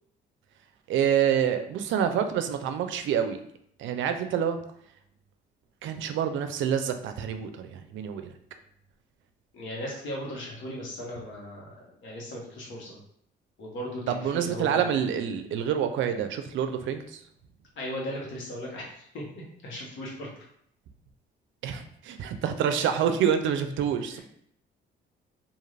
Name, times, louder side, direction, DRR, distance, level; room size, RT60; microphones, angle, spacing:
voice 1, 0.9-3.4 3.8-4.6 5.8-8.3 14.1-17.2 21.6-24.2, right 8 dB, 75° right, 8 dB, 0.4 m, -27 dB
voice 2, 9.5-13.0 13.6-14.9 17.7-20.3 24.1-24.2, equal, 75° left, -3 dB, 1.1 m, -37 dB
2.5 x 2.4 x 3.2 m, 0.69 s
cardioid pair, 90°, 20 cm